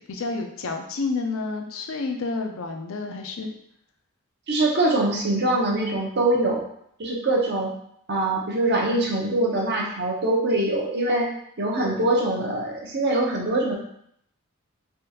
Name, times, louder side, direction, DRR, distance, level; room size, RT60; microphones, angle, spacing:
voice 1, 0.1-3.5, left 3 dB, 80° left, 4 dB, 0.5 m, -29 dB
voice 2, 4.5-6.6 7.0-7.7 8.1-11.3 11.6-13.8, right 2 dB, 55° right, -1 dB, 0.7 m, -23 dB
3.4 x 2.3 x 2.8 m, 0.70 s
head